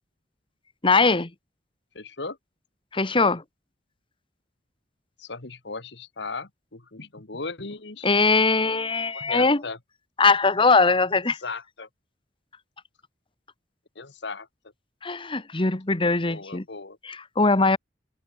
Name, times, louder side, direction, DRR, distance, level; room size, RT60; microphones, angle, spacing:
voice 1, 0.8-1.3 2.9-3.4 8.0-9.6 10.2-11.4 15.0-16.6 17.0-17.8, left 3 dB, 30° left, 1.4 m, -21 dB
voice 2, 1.9-2.4 3.2-3.3 5.2-8.4 9.1-9.8 11.4-11.9 14.0-14.5 16.2-17.0, left 4 dB, 65° left, 1.8 m, -37 dB
head